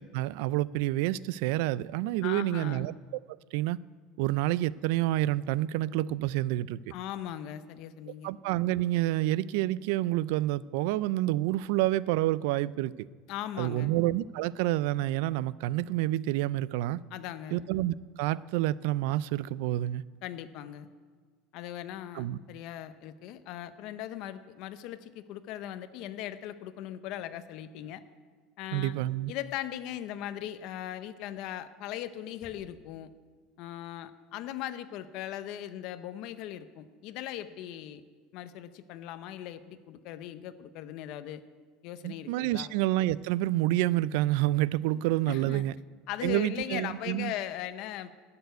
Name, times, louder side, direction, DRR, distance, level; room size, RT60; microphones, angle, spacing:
voice 1, 0.0-2.9 3.5-3.8 4.2-6.8 8.2-13.1 13.6-17.0 17.5-20.0 22.1-22.4 28.7-29.3 42.0-45.7 46.2-47.3, right 15 dB, 65° right, 20 dB, 0.3 m, -28 dB
voice 2, 2.2-2.9 6.9-8.3 13.3-13.9 17.1-17.6 20.2-20.9 21.5-28.0 28.6-28.9 29.3-33.1 33.6-38.0 38.3-41.4 41.8-42.7 45.3-45.6 46.1-48.2, left 12 dB, 50° left, 12 dB, 0.6 m, -39 dB
Bass drum, 32.4-33.8, left 2 dB, 30° left, 2.0 m, -59 dB
12.0 x 6.9 x 9.4 m, 1.5 s
cardioid pair, 175°, 0 cm